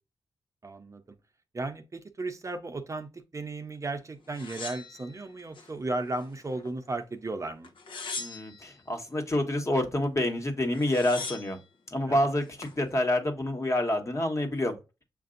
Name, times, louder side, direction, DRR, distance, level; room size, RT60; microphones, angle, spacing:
voice 1, 0.6-1.0 1.5-7.7 12.1-12.2, right 2 dB, 35° right, 0.7 m, -35 dB
sound 1, 4.3-5.7 6.1-6.9 7.6-8.7 10.3-10.4 10.6-11.6 12.3-12.8, left 4 dB, 70° left, 0.9 m, -41 dB
voice 2, 8.2-11.6 11.9-14.7, left 1 dB, 35° left, 1.4 m, -28 dB
6.7 x 2.6 x 2.5 m
supercardioid pair, 50°, 9 cm